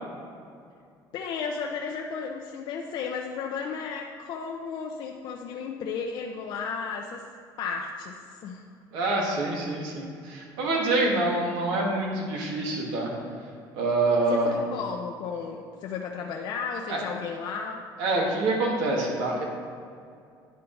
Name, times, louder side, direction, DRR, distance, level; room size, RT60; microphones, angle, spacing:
voice 1, 1.1-7.3 7.6-8.6 14.3-17.8, left 5 dB, 65° left, 1 dB, 0.5 m, -34 dB
voice 2, 8.9-13.1 13.7-14.6 16.9-17.0 18.0-19.5, right 2 dB, 90° right, -1 dB, 1.6 m, -26 dB
10.0 x 4.5 x 3.9 m, 2.4 s
cardioid pair, 115°, 8 cm